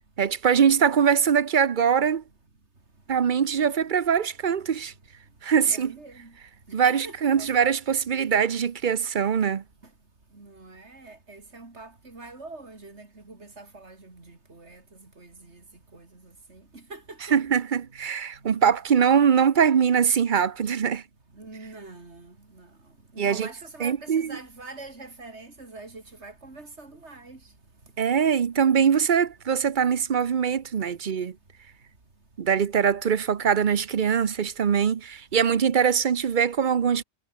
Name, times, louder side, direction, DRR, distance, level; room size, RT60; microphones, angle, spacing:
voice 1, 0.2-2.2 3.1-4.9 5.4-6.0 6.7-9.6 17.3-21.0 23.2-23.5 23.8-24.4 28.0-31.3 32.4-37.0, right 7 dB, 50° right, 0.9 m, -22 dB
voice 2, 5.3-6.4 6.7-7.5 10.3-17.3 18.3-18.5 21.3-27.6 27.8-27.9, right 3 dB, 75° right, 4.0 m, -45 dB
omnidirectional pair, 1.2 m